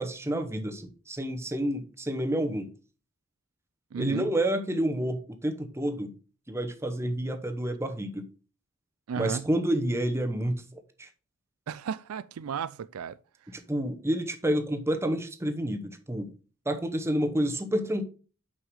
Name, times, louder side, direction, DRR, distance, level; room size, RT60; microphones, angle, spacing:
voice 1, 0.0-2.7 4.0-6.1 6.5-8.2 9.2-11.1 13.7-16.3 16.7-18.0, right 1 dB, 10° right, 0.8 m, -29 dB
voice 2, 3.9-4.3 9.1-9.5 11.7-13.2, right 6 dB, 85° right, 0.4 m, -34 dB
5.9 x 5.7 x 4.7 m
head